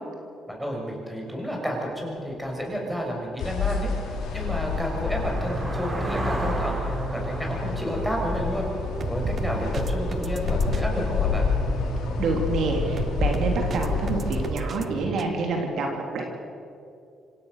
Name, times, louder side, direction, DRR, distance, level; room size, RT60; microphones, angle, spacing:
voice 1, 0.5-8.7 9.1-11.5, equal, ahead, -1 dB, 6.7 m, -31 dB
sound 1, 3.1-9.6, right 1 dB, 30° right, 4.2 m, -35 dB
sound 2, 3.4-14.5, left 5 dB, 85° left, 3.2 m, -29 dB
sound 3, 5.1-15.2, right 5 dB, 45° right, 1.2 m, -34 dB
voice 2, 12.2-16.2, right 3 dB, 70° right, 2 dB, 3.4 m, -27 dB
26.0 x 17.0 x 6.8 m, 2.6 s
cardioid pair, 90°, 0 cm